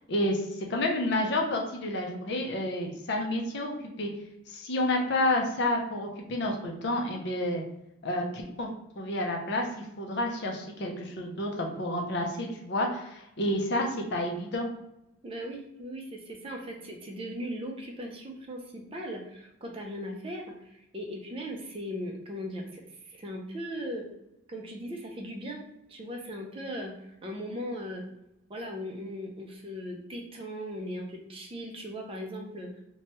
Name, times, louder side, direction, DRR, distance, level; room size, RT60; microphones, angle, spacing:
voice 1, 0.1-3.7 4.0-4.1 4.5-7.6 8.0-8.7 9.0-14.7, left 1 dB, 55° left, 2 dB, 0.5 m, -30 dB
voice 2, 15.2-24.1 24.5-25.6 25.9-28.0 28.5-32.7, equal, 25° right, 1 dB, 0.4 m, -38 dB
3.0 x 2.2 x 2.9 m, 0.83 s
head